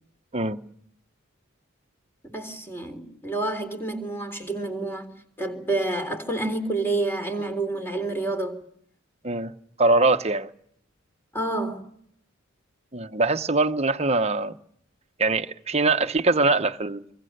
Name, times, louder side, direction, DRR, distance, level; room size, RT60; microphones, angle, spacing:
voice 1, 2.3-5.1 5.4-8.6 11.3-11.8, right 2 dB, 10° left, 3.7 m, -28 dB
voice 2, 9.8-10.5 12.9-14.6 15.2-17.1, right 3 dB, 30° right, 0.9 m, -22 dB
26.5 x 24.0 x 6.7 m
head